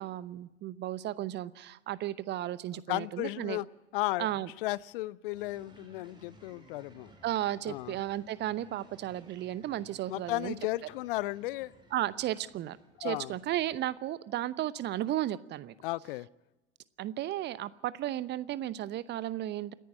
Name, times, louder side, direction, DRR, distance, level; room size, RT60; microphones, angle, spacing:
voice 1, 0.0-3.6 4.2-4.5 7.2-10.5 11.9-15.7 17.0-19.7, right 13 dB, 30° right, 18 dB, 0.8 m, -34 dB
voice 2, 2.9-3.7 3.9-4.3 4.6-7.1 7.7-8.0 10.1-11.7 13.0-13.4 15.8-16.3, left 18 dB, 50° left, 23 dB, 0.6 m, -34 dB
sound 1, 5.3-13.9, right 1 dB, 15° right, 5.1 m, -58 dB
28.5 x 10.0 x 9.7 m, 1.0 s
figure-of-eight pair, 80°, 35 cm